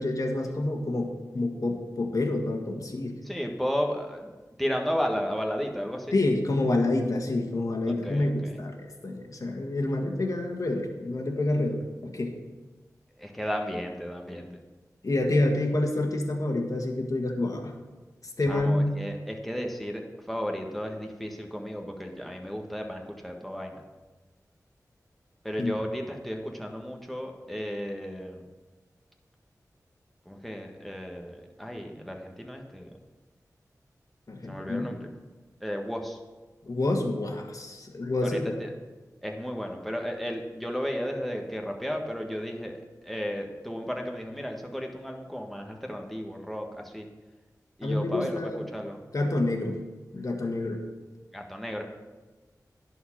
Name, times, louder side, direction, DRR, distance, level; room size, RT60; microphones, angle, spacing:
voice 1, 0.0-3.2 6.1-12.4 15.0-17.7 18.4-19.1 25.6-25.8 34.3-34.9 36.6-38.6 47.8-48.7 49.1-49.8 50.1-50.8, left 2 dB, 60° left, 2 dB, 1.6 m, -28 dB
voice 2, 3.3-4.3 4.6-6.1 7.9-8.5 13.2-14.5 18.5-20.0 20.3-23.8 25.4-28.4 30.3-32.9 34.5-35.0 35.6-36.2 38.2-38.7 39.2-42.8 43.0-47.1 47.8-48.4 48.7-49.0 51.3-51.8, equal, ahead, 1 dB, 1.5 m, -33 dB
11.0 x 4.6 x 7.3 m, 1.2 s
cardioid pair, 50°, 7 cm